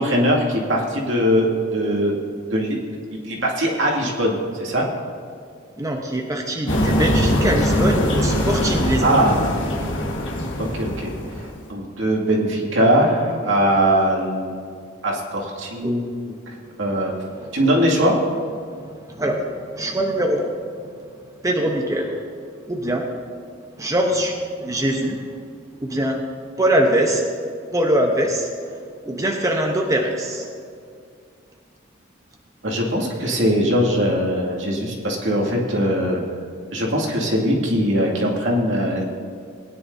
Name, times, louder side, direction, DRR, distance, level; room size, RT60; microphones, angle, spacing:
voice 1, 0.0-2.2 2.5-2.8 3.2-4.9 9.0-9.3 10.6-11.1 11.4-14.8 15.0-16.1 16.5-17.1 17.5-18.2 32.6-36.2 36.7-39.0, equal, 80° right, -2 dB, 2.3 m, -21 dB
voice 2, 5.8-9.2 15.8-15.9 17.4-17.5 19.1-19.4 19.7-20.5 21.4-22.1 22.7-23.0 23.8-25.2 25.8-26.2 26.6-27.2 27.7-28.5 29.0-30.5, right 1 dB, 15° right, 1 dB, 0.9 m, -22 dB
sound 1, 6.7-11.6, equal, 75° left, 1.6 m, -22 dB
19.5 x 9.9 x 2.7 m, 2.2 s
head